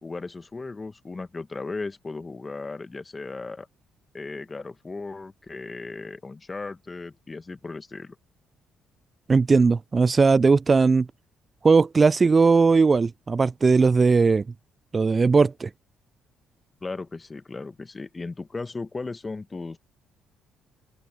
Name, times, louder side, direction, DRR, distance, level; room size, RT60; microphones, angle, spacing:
voice 1, 0.0-3.7 4.1-8.2 16.8-19.8, left 3 dB, 30° left, 1.8 m, -36 dB
voice 2, 9.3-11.1 11.6-14.4 14.9-15.7, right 4 dB, 35° right, 0.3 m, -18 dB
hypercardioid pair, 55°, 0 cm